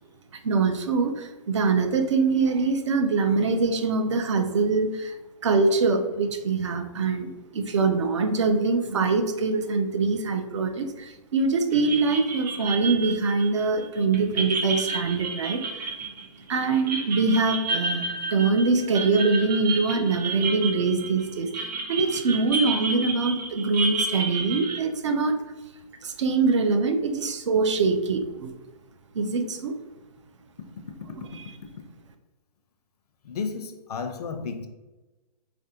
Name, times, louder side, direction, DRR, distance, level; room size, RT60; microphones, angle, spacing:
voice 1, 0.4-5.2 5.4-15.9 16.5-25.4 26.0-28.6 29.1-29.8 31.2-31.4, right 4 dB, 45° right, 7 dB, 0.4 m, -24 dB
sound 1, 11.7-24.8, right 3 dB, 80° right, 0.8 m, -31 dB
voice 2, 33.2-34.7, left 5 dB, 70° left, 7 dB, 0.6 m, -32 dB
4.1 x 2.5 x 2.7 m, 1.1 s
hypercardioid pair, 165°, 21 cm